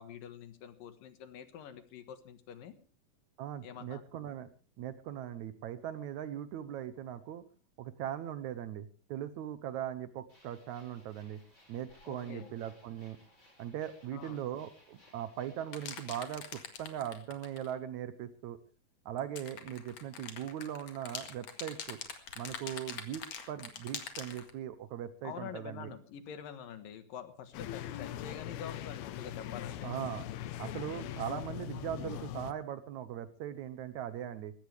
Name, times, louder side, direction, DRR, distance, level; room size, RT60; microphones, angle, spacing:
voice 1, 0.0-2.8 3.6-4.1 12.1-12.5 14.1-14.4 25.2-29.9, left 8 dB, 70° left, 10 dB, 3.1 m, -46 dB
voice 2, 3.4-4.5 4.8-7.4 7.8-11.4 11.7-13.2 13.6-18.6 19.1-22.0 22.4-25.9 29.8-30.3 30.6-34.5, right 10 dB, 75° right, 13 dB, 1.8 m, -40 dB
sound 1, 10.3-16.2, left 1 dB, 20° left, 6.7 m, -63 dB
sound 2, 15.7-17.7 19.2-24.5, left 7 dB, 50° left, 2.7 m, -44 dB
sound 3, 27.5-32.5, left 12 dB, 90° left, 3.0 m, -41 dB
20.5 x 17.0 x 3.4 m, 0.36 s
omnidirectional pair, 4.2 m